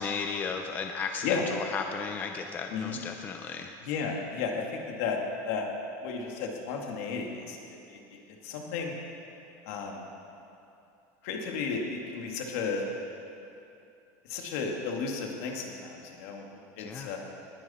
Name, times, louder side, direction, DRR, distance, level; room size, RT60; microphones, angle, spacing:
voice 1, 0.0-3.7 16.8-17.2, left 5 dB, 20° left, 4 dB, 0.5 m, -35 dB
voice 2, 3.9-5.2 5.4-5.7 6.0-8.0 8.3-8.9 9.7-10.0 11.2-12.8 14.3-16.5 16.8-17.2, left 5 dB, 65° left, 1 dB, 2.0 m, -33 dB
19.0 x 11.0 x 4.3 m, 2.7 s
cardioid pair, 175°, 9 cm